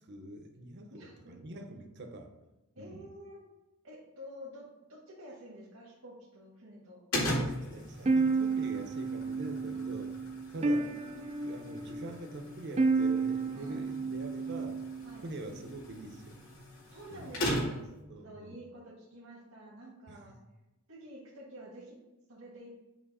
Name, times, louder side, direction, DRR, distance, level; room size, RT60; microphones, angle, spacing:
voice 1, 0.0-2.3 2.8-3.0 7.4-10.1 10.5-10.9 11.4-14.8 15.2-16.4 17.1-17.4 18.1-18.6 20.1-20.2, right 2 dB, 50° right, 5 dB, 0.8 m, -44 dB
voice 2, 0.9-1.4 2.7-3.4 3.8-7.0 9.7-9.9 10.5-11.3 13.5-13.8 15.0-15.3 16.9-20.3 20.9-22.0 22.3-22.7, equal, 85° right, -5 dB, 1.6 m, -50 dB
sound 1, 7.1-18.0, equal, 80° left, 2.2 m, -39 dB
sound 2, 8.1-15.2, right 4 dB, 30° right, 0.4 m, -31 dB
7.3 x 3.1 x 4.8 m, 0.99 s
head